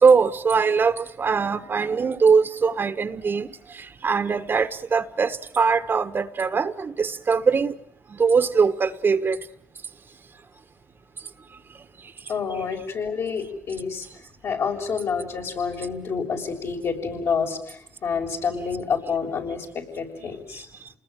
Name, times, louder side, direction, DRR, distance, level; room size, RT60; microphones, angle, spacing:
voice 1, 0.0-7.8 8.1-9.4 20.8-20.9, right 5 dB, 40° right, 1.6 m, -21 dB
voice 2, 12.3-14.1 14.4-20.7, left 5 dB, 60° left, 7.0 m, -28 dB
28.5 x 20.5 x 9.3 m
supercardioid pair, 65°, 5 cm